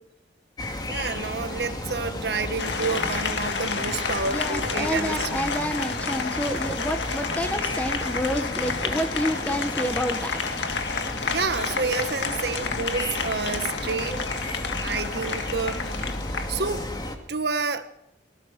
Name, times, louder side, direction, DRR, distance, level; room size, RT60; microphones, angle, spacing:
sound 1, 0.6-17.2, left 1 dB, 25° left, 2.3 m, -33 dB
voice 1, 0.9-5.4 11.2-14.2 14.8-16.2 16.5-16.9 17.3-17.8, right 4 dB, 65° right, 1.6 m, -29 dB
Applause, 2.6-16.6, left 5 dB, 85° left, 1.9 m, -31 dB
voice 2, 4.3-10.3, equal, 10° left, 1.3 m, -28 dB
25.0 x 19.0 x 6.0 m
head